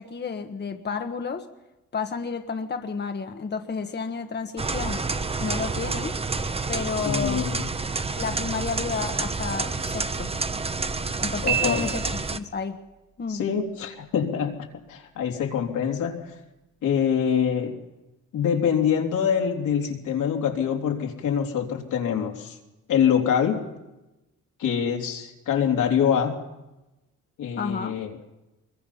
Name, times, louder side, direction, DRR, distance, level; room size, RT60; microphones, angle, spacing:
voice 1, 0.0-1.5 1.9-5.0 5.4-6.2 6.7-7.5 8.2-10.3 11.2-12.8 13.2-13.5 27.6-27.9, left 5 dB, 35° left, 6 dB, 1.3 m, -31 dB
sound 1, 4.6-12.4, right 3 dB, 20° right, 1.0 m, -29 dB
voice 2, 7.0-7.7 11.4-11.9 13.3-14.6 14.9-16.3 16.8-17.8 18.3-22.6 22.9-23.6 24.6-26.4 27.4-28.1, left 8 dB, 80° left, 2 dB, 3.3 m, -25 dB
Piano, 11.5-12.6, right 10 dB, 75° right, 1.5 m, -29 dB
24.5 x 22.0 x 5.7 m, 1.0 s
cardioid pair, 90°, 30 cm